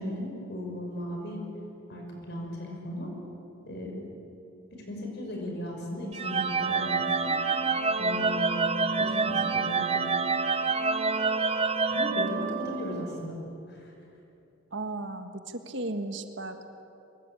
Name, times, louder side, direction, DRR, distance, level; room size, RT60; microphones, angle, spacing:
voice 1, 0.0-1.4 1.9-3.1 3.6-4.0 4.7-7.6 8.0-10.1 11.9-13.4 13.7-13.9, equal, 55° left, 1 dB, 5.9 m, -36 dB
sound 1, 6.1-13.1, right 4 dB, 30° right, 0.8 m, -27 dB
voice 2, 14.7-16.7, right 2 dB, 60° right, 7 dB, 1.6 m, -35 dB
23.0 x 22.0 x 8.9 m, 2.8 s
head